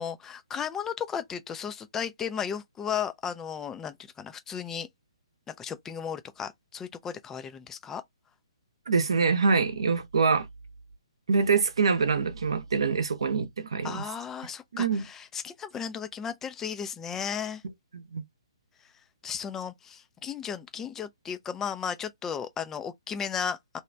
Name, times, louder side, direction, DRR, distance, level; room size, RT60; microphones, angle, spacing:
voice 1, 0.0-4.9 5.5-8.0 13.8-17.6 19.2-23.8, left 7 dB, 10° left, 0.4 m, -35 dB
voice 2, 8.9-10.5 11.3-14.0 14.7-15.0 17.9-18.2, right 5 dB, 65° right, 0.7 m, -25 dB
2.9 x 2.4 x 3.2 m
figure-of-eight pair, 130°, 3 cm